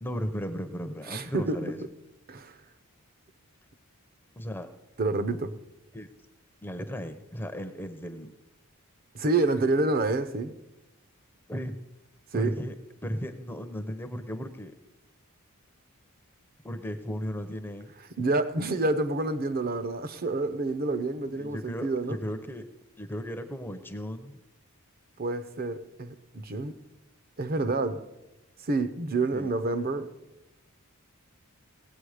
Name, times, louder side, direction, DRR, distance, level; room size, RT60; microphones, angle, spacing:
voice 1, 0.0-1.8 4.4-4.7 5.9-6.1 6.6-8.3 11.5-11.8 12.3-12.7 13.0-14.7 16.6-17.9 21.4-22.7 23.0-24.4 29.3-29.5, equal, 10° left, 0.6 m, -35 dB
voice 2, 1.1-1.7 2.3-2.6 5.0-5.5 9.1-10.5 12.3-12.5 18.2-22.2 25.2-26.7 27.4-28.0 28.6-30.1, right 2 dB, 45° right, 0.7 m, -28 dB
17.0 x 8.7 x 4.9 m
head